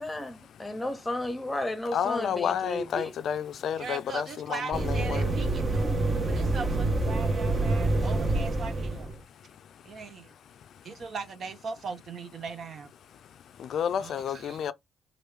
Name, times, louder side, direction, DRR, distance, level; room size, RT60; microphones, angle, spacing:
voice 1, 0.0-3.1, left 1 dB, 10° left, 1.0 m, -33 dB
voice 2, 1.9-5.3 13.6-14.7, left 8 dB, 65° left, 0.4 m, -30 dB
voice 3, 3.8-9.1 9.8-10.3 10.8-12.9 14.0-14.6, right 5 dB, 55° right, 0.7 m, -39 dB
sound 1, 4.7-9.2, right 2 dB, 35° right, 1.0 m, -27 dB
3.0 x 2.6 x 3.3 m
cardioid pair, 90°, 0 cm